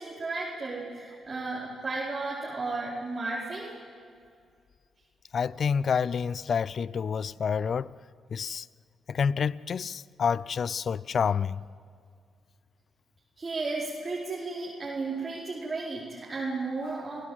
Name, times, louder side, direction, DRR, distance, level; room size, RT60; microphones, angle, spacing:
voice 1, 0.0-3.7 13.4-17.2, right 3 dB, 40° right, 4.6 m, -34 dB
voice 2, 5.3-7.9 8.3-8.7 9.1-11.6, left 6 dB, 55° left, 0.5 m, -28 dB
29.5 x 16.5 x 8.0 m
hypercardioid pair, 45°, 0 cm